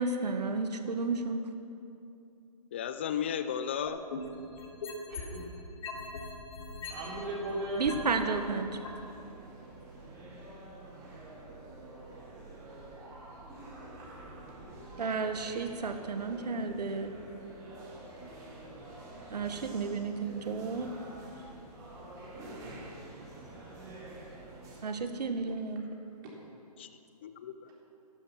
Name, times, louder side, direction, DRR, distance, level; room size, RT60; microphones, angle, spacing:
voice 1, 0.0-1.4 7.8-8.8 15.0-17.1 19.3-21.0 24.8-25.9, right 4 dB, 80° right, 7 dB, 1.4 m, -32 dB
voice 2, 2.7-4.0 26.8-26.9 27.2-27.7, left 8 dB, 15° left, 10 dB, 0.3 m, -34 dB
sound 1, 3.9-5.4 5.8-8.2 8.8-8.9, left 5 dB, 55° left, 2.8 m, -40 dB
voice 3, 5.1-5.4 6.8-7.9 14.0-14.1 15.3-15.6 17.8-17.9 21.2-21.3 22.3-22.5 23.2-23.3, right 1 dB, 30° right, -4 dB, 3.6 m, -39 dB
sound 2, 6.9-24.8, right 2 dB, 15° right, 2.6 m, -48 dB
13.0 x 11.5 x 6.0 m, 2.7 s
hypercardioid pair, 155°, 21 cm